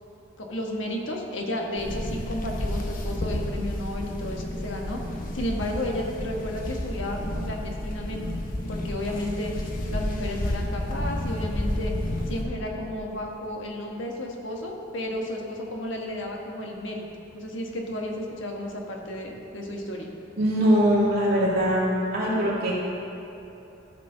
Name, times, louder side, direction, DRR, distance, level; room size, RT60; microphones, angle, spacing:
voice 1, 0.4-5.0 5.3-8.2 8.7-9.5 9.9-11.9 12.3-17.0 17.3-20.1, left 1 dB, 70° left, 0 dB, 1.3 m, -32 dB
sound 1, 1.8-12.4, left 1 dB, 45° left, 1.0 m, -31 dB
voice 2, 20.4-22.8, equal, 50° right, -6 dB, 2.5 m, -22 dB
14.5 x 6.7 x 3.9 m, 3.0 s
head